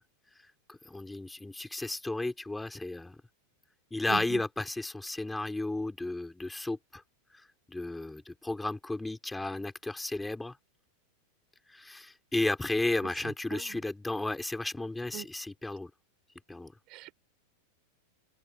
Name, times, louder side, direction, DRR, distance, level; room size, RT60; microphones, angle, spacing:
voice 1, 0.9-3.1 3.9-6.8 7.7-10.5 11.7-15.9 16.5-16.7, left 2 dB, 5° left, 4.3 m, -33 dB
voice 2, 4.1-4.4 13.5-13.8 15.1-15.3 16.9-17.1, right 22 dB, 50° right, 5.4 m, -40 dB
open air
hypercardioid pair, 100°, 0 cm